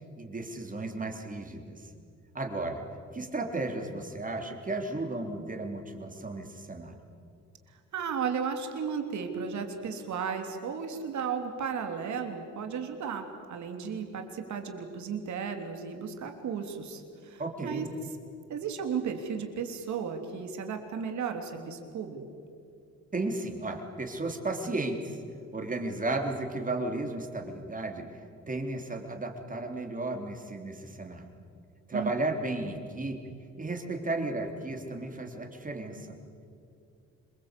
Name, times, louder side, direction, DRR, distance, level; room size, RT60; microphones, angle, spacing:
voice 1, 0.2-1.9 2.3-2.8 3.1-7.0 17.4-17.9 23.1-25.2 25.5-28.1 28.5-31.3 31.9-36.2, right 2 dB, 25° right, 3 dB, 3.7 m, -34 dB
voice 2, 7.9-17.9 18.5-22.2 31.9-32.1, right 6 dB, 70° right, 5 dB, 3.3 m, -34 dB
27.0 x 22.0 x 8.4 m, 2.5 s
cardioid pair, 90°, 30 cm